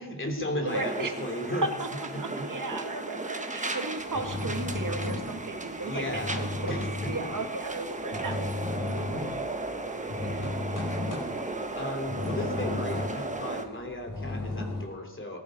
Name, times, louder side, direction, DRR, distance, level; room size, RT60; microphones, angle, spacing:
voice 1, 0.0-1.6 2.1-2.2 5.8-6.9 11.7-15.4, left 1 dB, 30° left, 3 dB, 3.2 m, -35 dB
voice 2, 0.6-1.2 1.6-10.5 11.6-11.9, right 2 dB, 50° right, 5 dB, 2.0 m, -36 dB
sound 1, 0.7-13.6, right 2 dB, 20° right, 1.3 m, -36 dB
sound 2, 4.0-7.4 7.7-14.8, left 2 dB, 50° left, 5.1 m, -34 dB
19.5 x 12.0 x 5.2 m, 1.1 s
wide cardioid pair, 105°, 41 cm